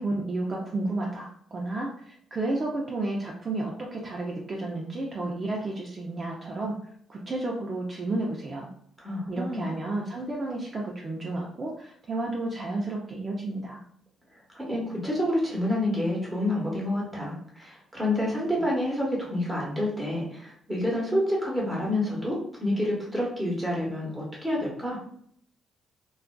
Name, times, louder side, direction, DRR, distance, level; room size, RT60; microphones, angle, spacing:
voice 1, 0.0-6.7 7.1-8.7 9.3-13.8, right 2 dB, 35° right, -2 dB, 0.5 m, -32 dB
voice 2, 9.0-9.7 14.5-25.0, left 1 dB, 5° right, -4 dB, 1.0 m, -28 dB
2.4 x 2.3 x 2.2 m, 0.65 s
cardioid pair, 90°, 0 cm